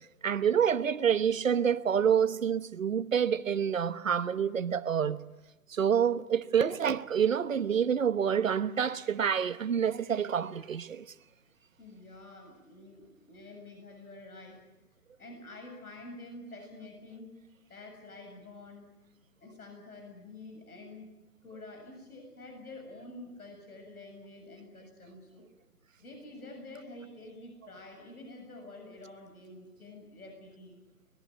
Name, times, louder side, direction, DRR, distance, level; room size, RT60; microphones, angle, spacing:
voice 1, 0.2-5.2 5.7-11.0, right 8 dB, 60° right, 1.2 m, -27 dB
voice 2, 11.8-14.6 15.2-17.3 17.7-18.9 19.4-21.1 21.4-25.4 26.0-30.8, left 2 dB, 70° left, 7.5 m, -48 dB
23.0 x 20.5 x 9.3 m
hypercardioid pair, 160°, 46 cm